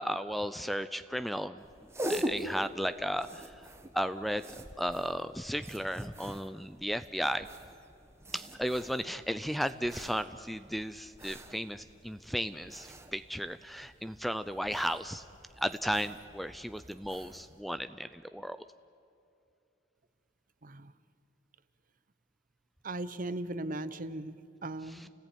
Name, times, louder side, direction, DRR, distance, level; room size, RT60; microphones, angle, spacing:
voice 1, 0.0-1.6 2.0-3.5 3.9-7.5 8.3-15.2 15.6-18.6 24.9-25.1, equal, ahead, 12 dB, 0.5 m, -35 dB
sound 1, 1.6-17.6, equal, 15° right, 1.5 m, -44 dB
voice 2, 20.6-20.9 22.8-25.1, right 2 dB, 45° right, 13 dB, 0.9 m, -38 dB
30.0 x 18.5 x 9.2 m, 2.7 s
head